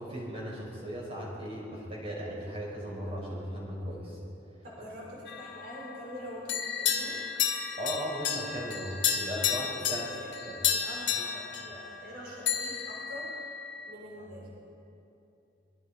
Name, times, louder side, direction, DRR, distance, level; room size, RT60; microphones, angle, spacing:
voice 1, 0.0-4.2 7.8-10.1 10.5-10.6 11.1-11.2, equal, 35° right, -3 dB, 5.9 m, -37 dB
voice 2, 4.6-7.2 9.9-13.3 13.9-14.5, equal, 55° right, -4 dB, 5.2 m, -44 dB
sound 1, 5.3-6.1 6.5-12.2 12.5-13.9, left 8 dB, 70° left, 1.9 m, -32 dB
23.0 x 22.5 x 5.3 m, 2.8 s
head